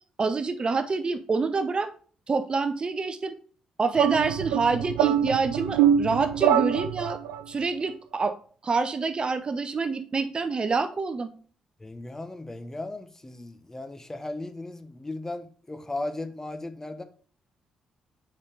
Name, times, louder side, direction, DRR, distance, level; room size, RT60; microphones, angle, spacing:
voice 1, 0.2-1.9 2.3-3.3 3.8-7.2 7.5-8.3 8.6-11.3, right 4 dB, 40° right, 0.7 m, -27 dB
sound 1, 4.0-7.4, right 9 dB, 80° right, 0.4 m, -24 dB
voice 2, 11.8-17.0, left 2 dB, 20° left, 0.9 m, -36 dB
6.5 x 5.3 x 3.4 m
hypercardioid pair, 45°, 2 cm